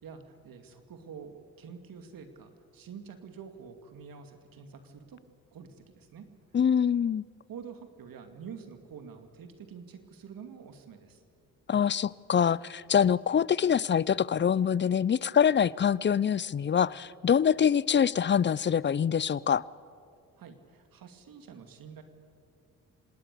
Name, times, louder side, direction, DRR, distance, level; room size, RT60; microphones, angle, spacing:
voice 1, 0.0-5.2 5.5-6.3 7.5-11.2 20.4-22.0, right 6 dB, 65° right, 7 dB, 2.4 m, -47 dB
voice 2, 6.5-7.2 11.7-19.6, left 8 dB, 30° left, 22 dB, 0.5 m, -25 dB
26.0 x 19.0 x 6.8 m, 2.3 s
supercardioid pair, 55°, 37 cm